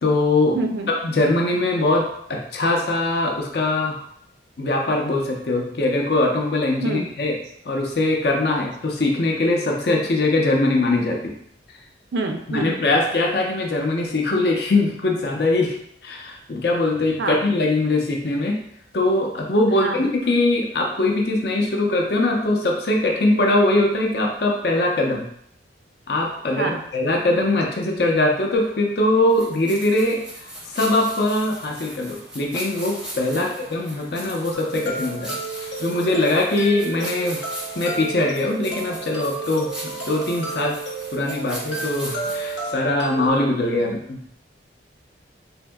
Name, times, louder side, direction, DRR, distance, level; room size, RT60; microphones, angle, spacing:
voice 1, 0.0-0.6 1.0-4.0 4.6-7.3 7.6-11.3 12.5-15.8 16.0-18.6 18.9-25.3 26.1-37.4 37.8-40.8 41.1-44.2, left 2 dB, 55° left, 1 dB, 0.5 m, -22 dB
voice 2, 0.5-0.9 6.8-7.1 12.1-12.8 17.2-17.4 19.8-20.0 26.5-26.8 33.3-33.5 43.8-43.9, right 2 dB, 65° right, 4 dB, 0.4 m, -26 dB
sound 1, 29.3-42.7, equal, 5° right, 0.5 m, -38 dB
sound 2, 34.5-43.3, right 3 dB, 85° left, 0.8 m, -32 dB
3.5 x 2.7 x 2.2 m, 0.70 s
head